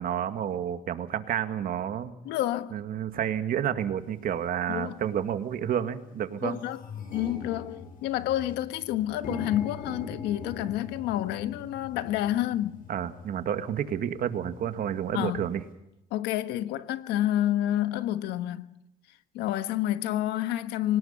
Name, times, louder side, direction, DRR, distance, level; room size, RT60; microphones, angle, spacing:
voice 1, 0.0-2.1 2.7-6.6 12.9-15.6, right 9 dB, 60° right, 2.0 m, -30 dB
voice 2, 2.2-2.7 4.7-4.9 6.4-6.8 7.1-12.8 15.1-15.5 16.1-18.8 19.3-21.0, left 13 dB, 90° left, 1.4 m, -29 dB
sound 1, 4.1-4.2 5.0-5.2 5.6-5.7 6.0-15.7, left 4 dB, 55° left, 7.7 m, -43 dB
24.5 x 19.5 x 5.8 m
cardioid pair, 110°, 17 cm